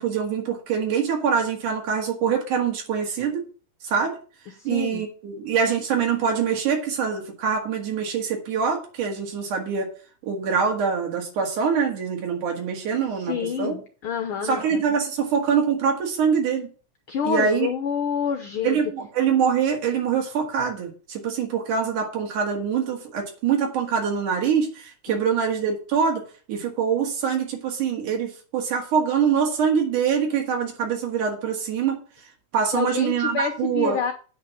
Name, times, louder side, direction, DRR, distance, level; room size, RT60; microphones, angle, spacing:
voice 1, 0.0-3.4 3.8-4.2 4.7-9.9 10.2-13.8 14.4-16.7 17.2-17.7 18.6-26.2 26.5-32.0 32.5-34.0, right 7 dB, 80° right, 1 dB, 3.4 m, -24 dB
voice 2, 4.6-5.1 12.9-14.8 17.1-18.8 25.1-25.2 32.7-34.1, left 7 dB, 70° left, 7 dB, 1.3 m, -28 dB
8.6 x 5.4 x 7.1 m, 0.37 s
omnidirectional pair, 3.5 m